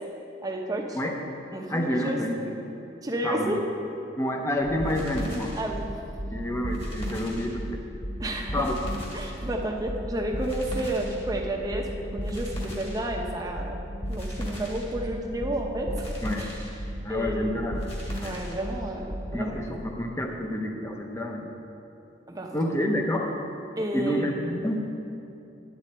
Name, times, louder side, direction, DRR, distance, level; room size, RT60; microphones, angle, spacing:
voice 1, 0.4-1.0 1.5-2.2 3.0-3.6 5.6-5.8 8.2-8.6 9.1-13.7 14.1-16.1 16.4-16.6 17.1-17.7 18.2-19.8 22.3-22.6 23.8-24.6, right 1 dB, 20° right, 1 dB, 0.8 m, -31 dB
voice 2, 1.7-2.6 3.2-3.5 4.2-5.6 6.3-7.8 8.5-8.8 16.2-16.5 17.0-17.8 18.2-18.3 19.3-21.5 22.5-23.3 23.9-24.8, left 1 dB, 15° left, 2 dB, 0.7 m, -29 dB
sound 1, 4.6-19.3, equal, 30° left, 1.5 m, -34 dB
9.1 x 8.7 x 4.3 m, 2.8 s
head